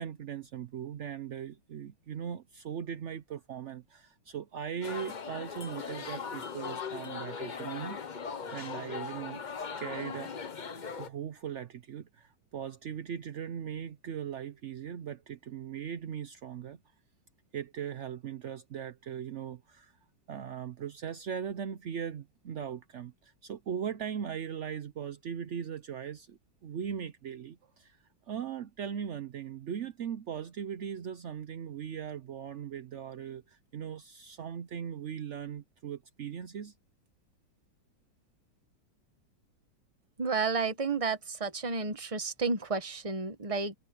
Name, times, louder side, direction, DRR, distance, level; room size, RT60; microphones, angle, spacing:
voice 1, 0.0-8.0 8.5-9.4 9.8-10.3 11.0-16.8 17.5-19.9 20.3-28.0 28.3-36.7, right 8 dB, 75° right, 0.6 m, -39 dB
sound 1, 4.8-11.1, left 6 dB, 70° left, 0.4 m, -39 dB
voice 2, 40.2-43.7, right 4 dB, 20° right, 1.0 m, -31 dB
omnidirectional pair, 2.2 m